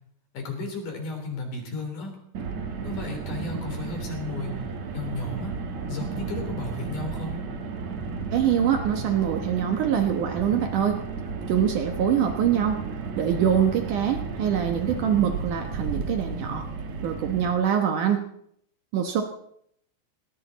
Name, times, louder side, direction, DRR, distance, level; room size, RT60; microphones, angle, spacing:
voice 1, 0.3-2.1 2.8-4.6 4.9-5.5 5.9-7.4, left 3 dB, 45° left, 3 dB, 4.5 m, -34 dB
Car, 2.3-17.5, right 4 dB, 55° right, 2.0 m, -33 dB
voice 2, 8.3-11.0 11.5-12.8 13.2-16.6 17.0-18.2 18.9-19.2, right 9 dB, 75° right, 5 dB, 1.9 m, -24 dB
18.5 x 18.0 x 4.1 m, 0.69 s
omnidirectional pair, 5.3 m